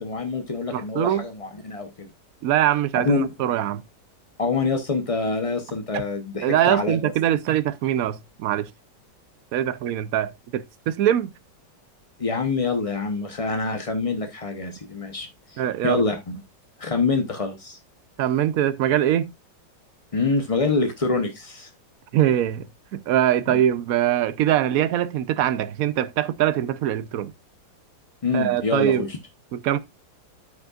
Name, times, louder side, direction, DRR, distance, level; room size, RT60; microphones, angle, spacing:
voice 1, 0.0-2.1 2.9-3.3 4.4-7.1 12.2-16.4 16.8-17.8 20.1-21.7 23.5-23.6 28.2-29.2, left 3 dB, 45° left, 0.4 m, -26 dB
voice 2, 0.7-1.2 2.4-3.8 5.9-6.0 6.4-8.7 9.5-11.3 15.6-16.0 18.2-19.3 22.1-22.7 22.9-27.3 28.3-29.1 29.5-29.8, right 11 dB, 65° right, 0.9 m, -22 dB
13.0 x 5.3 x 2.4 m
omnidirectional pair, 2.0 m